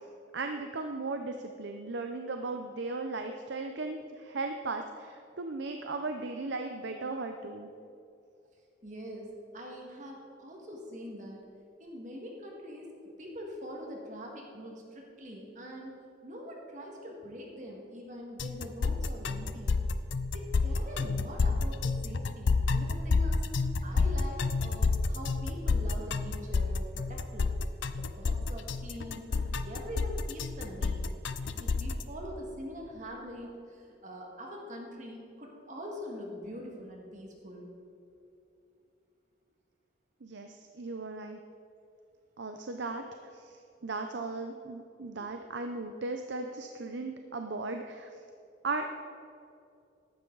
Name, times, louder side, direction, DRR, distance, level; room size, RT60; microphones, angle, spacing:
voice 1, 0.3-7.7 40.2-41.4 42.4-43.0 43.3-43.6 43.8-48.1 48.6-48.9, right 3 dB, 70° right, 5 dB, 0.7 m, -37 dB
voice 2, 8.8-11.4 11.8-12.9 13.2-19.8 20.3-23.4 23.8-27.5 28.0-31.1 31.4-37.7 45.1-45.2, equal, 40° right, -1 dB, 1.9 m, -43 dB
sound 1, 18.4-32.0, left 4 dB, 80° left, 0.6 m, -29 dB
14.5 x 12.0 x 4.0 m, 2.6 s
head